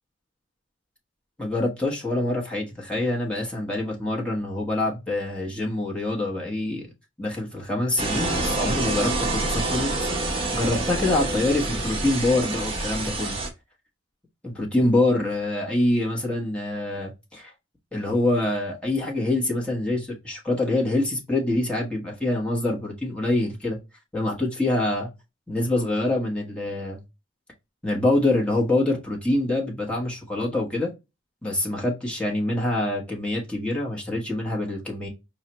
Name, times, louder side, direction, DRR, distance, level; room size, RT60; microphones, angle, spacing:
voice 1, 1.4-6.9 7.2-10.1 10.5-13.4 14.4-17.5 17.9-23.8 24.1-25.1 25.5-27.0 27.8-30.9 31.4-35.1, left 2 dB, 5° left, 1.0 m, -25 dB
sound 1, 8.0-13.5, right 2 dB, 25° right, 0.7 m, -27 dB
4.7 x 2.1 x 2.8 m
head